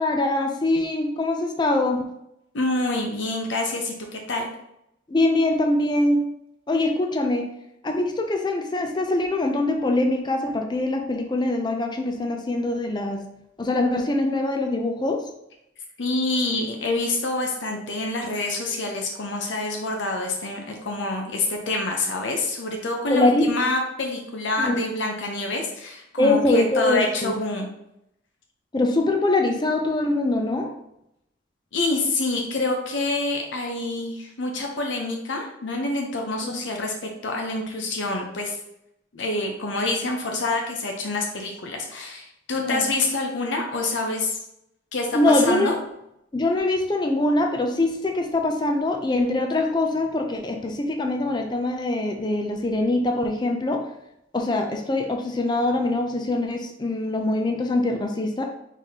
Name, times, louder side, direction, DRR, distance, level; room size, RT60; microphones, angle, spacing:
voice 1, 0.0-2.0 5.1-6.3 6.7-7.5 7.8-13.2 13.6-15.2 23.1-23.5 24.6-24.8 26.2-27.4 28.7-30.7 36.4-36.6 42.5-42.9 45.1-45.7 46.3-53.8 54.3-58.4, left 2 dB, 25° left, 3 dB, 0.5 m, -23 dB
voice 2, 2.5-4.5 16.0-27.7 31.7-38.6 39.1-44.4 44.9-45.7, left 2 dB, 85° left, 2 dB, 0.7 m, -27 dB
4.6 x 4.1 x 2.8 m, 0.81 s
head